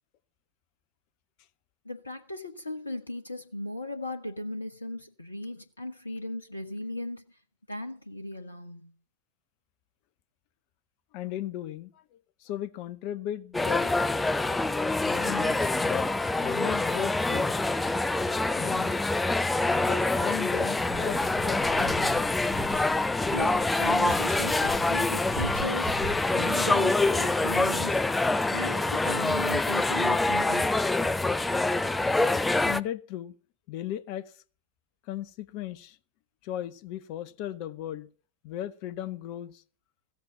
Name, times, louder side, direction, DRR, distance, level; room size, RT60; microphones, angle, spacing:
voice 1, 1.8-7.4 7.7-8.9 23.3-26.0 26.3-30.7, left 2 dB, 80° left, 1.1 m, -37 dB
voice 2, 11.1-12.0 12.4-13.9 15.0-16.1 16.4-17.5 18.6-18.9 19.7-22.2 32.6-33.3 33.7-34.3 35.1-36.0 36.4-38.1 38.4-39.6, left 12 dB, 45° left, 1.0 m, -36 dB
sound 1, 13.5-32.8, left 2 dB, 10° left, 0.6 m, -26 dB
sound 2, 20.8-28.7, right 2 dB, 80° right, 2.9 m, -42 dB
15.5 x 8.1 x 7.1 m
figure-of-eight pair, 90°, 0 cm